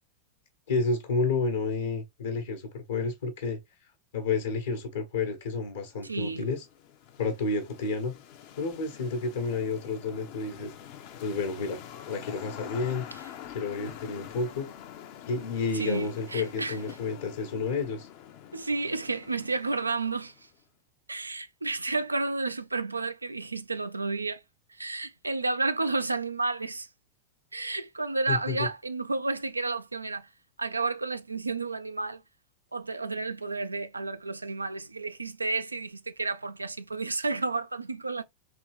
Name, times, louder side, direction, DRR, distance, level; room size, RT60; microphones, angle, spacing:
voice 1, 0.7-3.6 4.1-6.6 7.2-8.1 8.6-10.7 11.2-13.0 13.5-14.7 15.2-18.1 28.3-28.7, left 4 dB, 65° left, 1.0 m, -30 dB
sound 1, 6.0-20.5, left 10 dB, 45° left, 0.6 m, -46 dB
voice 2, 6.0-6.5 13.1-13.2 15.7-16.8 18.5-20.3 21.1-24.4 24.7-26.9 27.5-30.3 30.6-32.2 32.7-38.2, right 3 dB, 80° right, 0.4 m, -31 dB
3.6 x 3.0 x 3.1 m
figure-of-eight pair, 90°, 0 cm